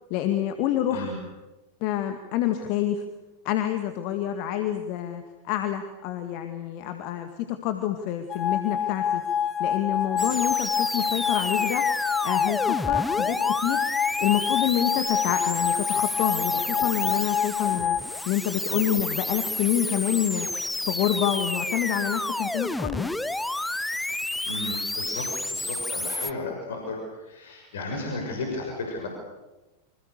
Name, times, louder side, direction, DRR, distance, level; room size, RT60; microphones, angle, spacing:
voice 1, 0.1-1.1 1.8-3.0 3.4-9.2 9.6-11.8 12.2-13.8 14.2-18.0 18.3-20.5 20.8-23.1, left 11 dB, 45° left, 7 dB, 2.1 m, -27 dB
voice 2, 0.9-1.2 24.4-29.1, left 2 dB, 60° left, 2 dB, 6.3 m, -34 dB
sound 1, 8.3-18.0, left 8 dB, 30° left, 1.8 m, -27 dB
sound 2, 10.2-26.3, left 1 dB, 5° left, 0.9 m, -30 dB
28.5 x 26.5 x 6.9 m, 1.1 s
figure-of-eight pair, 90°, 0 cm